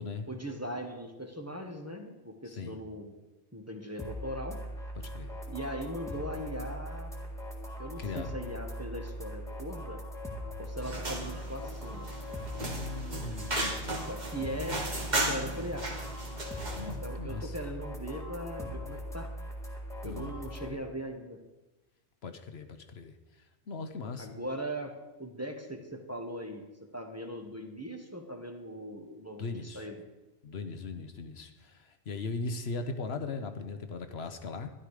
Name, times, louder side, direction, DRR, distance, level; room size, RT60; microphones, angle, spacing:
voice 1, 0.3-3.1 3.5-4.6 5.5-7.1 7.8-10.0 10.6-12.2 13.9-14.8 15.2-15.9 16.8-19.3 20.0-21.4 24.2-24.9 25.2-26.6 26.9-30.0, right 1 dB, 15° right, 3 dB, 1.3 m, -39 dB
voice 2, 2.5-2.8 5.0-5.3 8.0-8.3 12.6-14.0 16.7-17.5 20.0-20.8 22.2-23.1 23.7-24.3 29.4-29.9 30.4-34.7, left 4 dB, 65° left, 8 dB, 1.1 m, -39 dB
sound 1, 4.0-20.7, equal, 5° left, 1.8 m, -40 dB
sound 2, 10.8-17.0, right 1 dB, 40° right, 1.8 m, -35 dB
13.0 x 11.5 x 4.9 m, 1.0 s
omnidirectional pair, 1.2 m